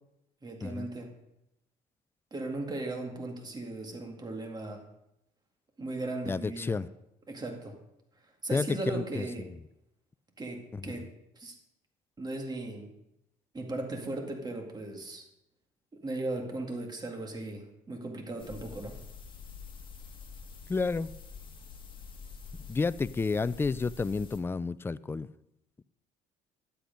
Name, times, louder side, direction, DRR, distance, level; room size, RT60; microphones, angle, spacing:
voice 1, 0.4-1.1 2.3-4.8 5.8-6.8 7.3-7.8 8.4-9.5 10.4-11.5 12.2-12.9 13.5-15.2 15.9-19.0, right 2 dB, 25° right, 2.0 m, -37 dB
voice 2, 6.2-6.9 8.5-9.5 10.7-10.9 20.7-21.2 22.7-25.3, left 4 dB, 15° left, 0.3 m, -31 dB
sound 1, 18.4-24.4, left 5 dB, 30° left, 1.8 m, -47 dB
11.5 x 8.1 x 5.2 m
cardioid pair, 110°, 17 cm